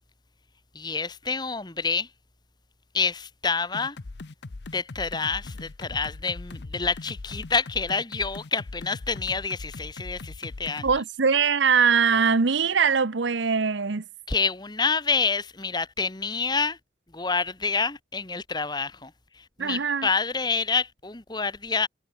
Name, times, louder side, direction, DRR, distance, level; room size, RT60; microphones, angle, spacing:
voice 1, 0.7-2.1 2.9-4.0 4.7-11.0 14.3-16.8 17.1-21.9, left 4 dB, 20° left, 1.2 m, -28 dB
sound 1, 3.7-11.0, left 3 dB, 60° left, 0.7 m, -40 dB
voice 2, 10.8-14.0 19.6-20.1, right 6 dB, 75° right, 0.8 m, -22 dB
head